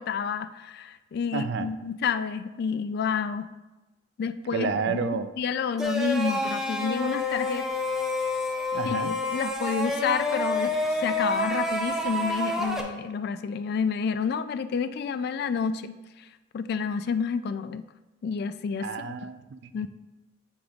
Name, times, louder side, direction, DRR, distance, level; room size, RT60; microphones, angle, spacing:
voice 1, 0.0-3.5 4.2-7.7 8.8-10.7 11.0-16.0 16.5-17.9 18.2-19.1 19.7-19.9, left 6 dB, 55° left, 12 dB, 0.3 m, -29 dB
voice 2, 1.3-1.7 4.5-5.3 8.7-9.1 18.8-19.9, right 5 dB, 65° right, 11 dB, 0.4 m, -30 dB
sound 1, 5.8-12.8, left 1 dB, 5° right, 0.6 m, -28 dB
9.1 x 5.1 x 2.4 m, 1.1 s
head